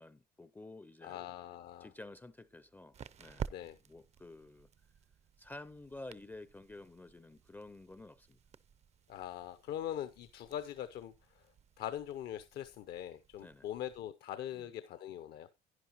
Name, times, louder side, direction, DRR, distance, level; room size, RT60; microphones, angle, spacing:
voice 1, 0.0-1.2 1.8-3.5 3.9-4.7 5.4-8.4 13.4-13.7 14.5-14.7, left 2 dB, 10° left, 0.4 m, -51 dB
voice 2, 1.0-1.9 3.5-3.8 9.1-11.4 11.8-15.5, left 11 dB, 70° left, 0.7 m, -42 dB
sound 1, 1.6-14.0, right 8 dB, 40° right, 0.5 m, -52 dB
11.0 x 9.8 x 2.9 m
cardioid pair, 110°, 17 cm